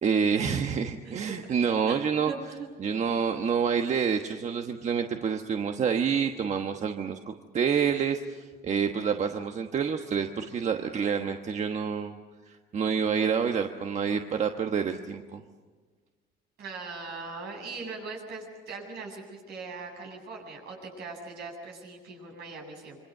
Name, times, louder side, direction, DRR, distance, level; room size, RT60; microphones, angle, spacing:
voice 1, 0.0-2.3 2.8-12.2 12.5-15.4, right 6 dB, 45° right, 5 dB, 1.2 m, -28 dB
voice 2, 1.0-1.3 1.8-2.7 16.6-23.0, right 4 dB, 75° right, 1 dB, 7.8 m, -40 dB
26.5 x 24.0 x 6.7 m, 1.4 s
cardioid pair, 110°, 17 cm